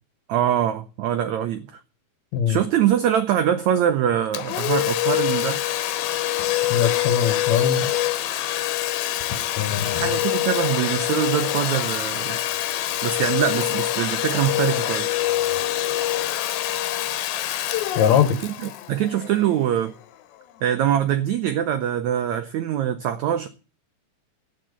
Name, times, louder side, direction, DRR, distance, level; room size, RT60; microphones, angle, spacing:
voice 1, 0.3-1.8 2.5-5.6 9.9-12.4 13.0-15.1 18.4-18.5 18.9-19.9 20.6-23.5, right 10 dB, 85° right, 1.6 m, -23 dB
Domestic sounds home sounds, 4.3-19.8, left 13 dB, 85° left, 2.8 m, -25 dB
voice 2, 6.7-7.9 9.6-10.1 18.0-18.4, left 8 dB, 60° left, 2.2 m, -21 dB
11.0 x 8.8 x 8.0 m
omnidirectional pair, 4.2 m